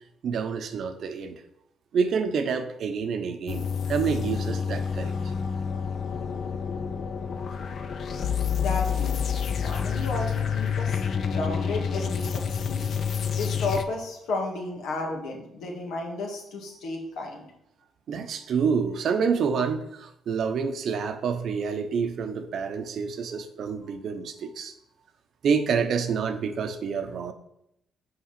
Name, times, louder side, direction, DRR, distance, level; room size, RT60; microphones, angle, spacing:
voice 1, 0.2-1.4 1.9-5.1 12.9-13.0 18.1-24.7 25.4-27.3, right 6 dB, 65° right, 8 dB, 0.8 m, -28 dB
sound 1, 3.5-13.8, left 7 dB, 60° left, 0.6 m, -28 dB
voice 2, 8.4-9.2 9.6-11.0 11.3-12.9 13.3-17.5, left 2 dB, 80° left, 0 dB, 1.8 m, -33 dB
5.8 x 4.8 x 5.9 m, 0.80 s
cardioid pair, 90°, 0 cm